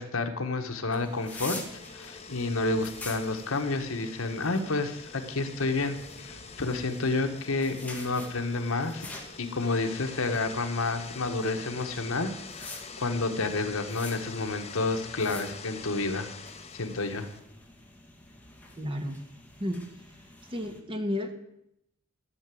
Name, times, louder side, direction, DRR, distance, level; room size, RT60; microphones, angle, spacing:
voice 1, 0.0-1.6 1.9-12.3 12.6-16.3 16.7-17.3, left 3 dB, 70° left, 6 dB, 1.4 m, -30 dB
sound 1, 0.9-17.4, left 5 dB, 30° left, 1.1 m, -45 dB
sound 2, 0.9-20.8, left 2 dB, 10° left, 2.0 m, -48 dB
voice 2, 18.7-19.2 19.6-19.8 20.5-21.3, left 1 dB, 25° right, 5 dB, 1.7 m, -32 dB
13.0 x 7.0 x 9.2 m, 0.80 s
head